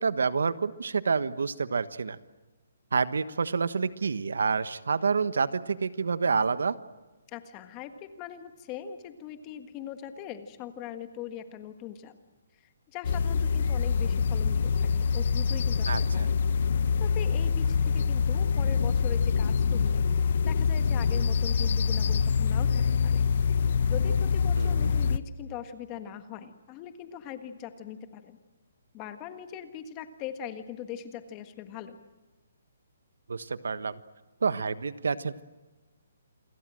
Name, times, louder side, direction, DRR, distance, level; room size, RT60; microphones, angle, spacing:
voice 1, 0.0-2.2 2.9-6.8 15.9-16.3 24.6-24.9 33.3-34.0 34.4-35.4, right 5 dB, 85° right, 13 dB, 1.3 m, -28 dB
voice 2, 7.3-12.1 12.9-16.4 17.0-20.0 20.4-23.2 23.9-28.4 28.9-32.0, left 9 dB, 20° left, 8 dB, 1.6 m, -41 dB
sound 1, 13.0-25.2, left 6 dB, 50° left, 1.0 m, -25 dB
28.5 x 22.5 x 7.7 m, 1.2 s
hypercardioid pair, 170°, 0 cm